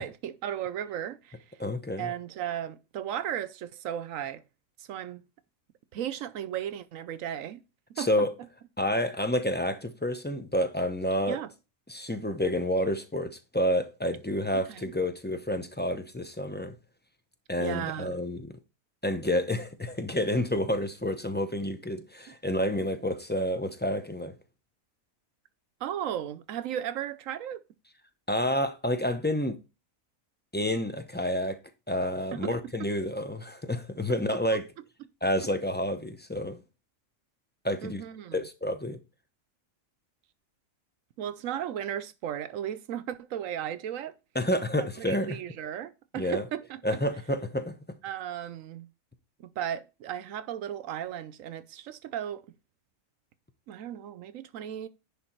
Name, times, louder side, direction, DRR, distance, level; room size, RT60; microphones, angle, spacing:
voice 1, 0.0-1.4 2.0-4.4 4.8-5.2 5.9-7.6 7.9-8.3 11.3-11.5 14.5-14.9 17.6-18.2 22.3-22.4 25.8-27.6 32.3-32.5 32.8-32.9 34.5-34.6 37.8-38.4 41.2-44.1 44.8-47.0 48.0-48.9 49.4-52.5 53.7-54.9, right 10 dB, 80° right, 1.0 m, -35 dB
voice 2, 1.6-2.1 8.0-8.3 8.8-11.4 11.9-16.7 17.5-18.5 19.0-24.3 28.3-29.6 30.5-31.6 31.9-34.6 35.2-36.6 37.6-38.0 38.3-39.0 44.3-45.4 46.1-46.4 46.8-47.8, left 1 dB, 10° left, 0.6 m, -29 dB
10.5 x 3.7 x 4.5 m
omnidirectional pair, 1.4 m